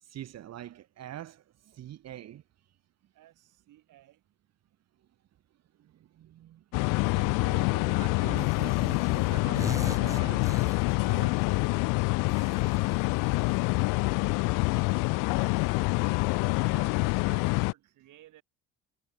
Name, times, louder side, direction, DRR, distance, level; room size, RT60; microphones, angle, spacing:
voice 1, 0.0-2.4 5.8-6.6 6.9-11.7 12.6-12.7, right 12 dB, 55° right, 0.9 m, -45 dB
voice 2, 3.1-4.2 12.2-13.1 13.6-13.7 14.3-18.4, right 14 dB, 70° right, 5.0 m, -57 dB
sound 1, 6.7-17.7, left 27 dB, 80° left, 0.5 m, -26 dB
sound 2, 8.4-9.0 9.3-11.3 12.3-13.8, right 2 dB, 10° right, 0.9 m, -43 dB
supercardioid pair, 75°, 32 cm